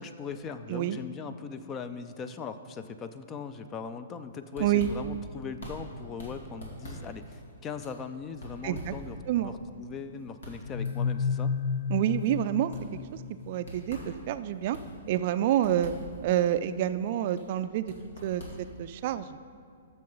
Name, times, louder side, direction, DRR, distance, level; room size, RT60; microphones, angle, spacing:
voice 1, 0.0-11.5, left 5 dB, 25° left, 11 dB, 0.5 m, -40 dB
sound 1, 4.2-19.1, equal, 80° left, 2.5 m, -46 dB
voice 2, 8.6-8.9 9.3-9.5 11.9-12.7 13.5-14.8 15.1-15.9 16.2-17.9 18.2-19.3, right 12 dB, 50° right, 12 dB, 0.4 m, -28 dB
sound 2, 10.6-13.4, left 6 dB, 50° left, 1.0 m, -31 dB
13.0 x 6.6 x 3.9 m, 2.4 s
hypercardioid pair, 135°, 0 cm